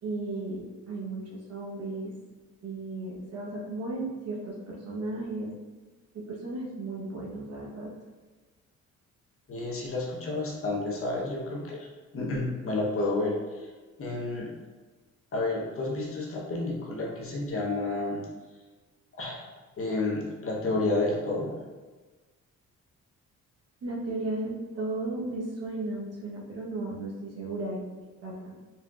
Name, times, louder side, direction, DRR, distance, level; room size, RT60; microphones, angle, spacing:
voice 1, 0.0-2.1 2.6-5.5 6.1-7.9 23.8-27.8 28.2-28.5, right 2 dB, 55° right, -4 dB, 1.2 m, -35 dB
voice 2, 9.5-11.9 12.1-13.7 14.0-14.5 15.3-18.2 19.2-19.4 19.8-21.6, left 2 dB, 45° left, -2 dB, 1.1 m, -30 dB
4.4 x 3.5 x 2.5 m, 1.3 s
cardioid pair, 90°, 30 cm